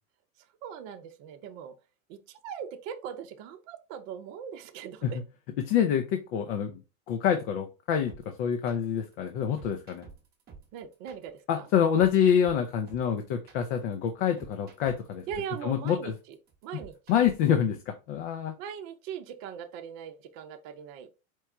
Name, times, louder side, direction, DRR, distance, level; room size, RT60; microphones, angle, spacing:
voice 1, 0.6-1.8 2.1-5.2 10.7-11.7 15.3-16.4 16.6-16.9 18.6-21.1, right 8 dB, 40° right, 0.7 m, -40 dB
voice 2, 5.6-6.8 7.1-8.1 8.4-10.1 11.5-15.2 15.6-16.1 16.7-16.8 17.1-18.5, left 8 dB, 45° left, 0.7 m, -26 dB
sound 1, 8.1-17.6, right 5 dB, 25° right, 1.2 m, -51 dB
4.6 x 2.3 x 4.4 m
hypercardioid pair, 125°, 41 cm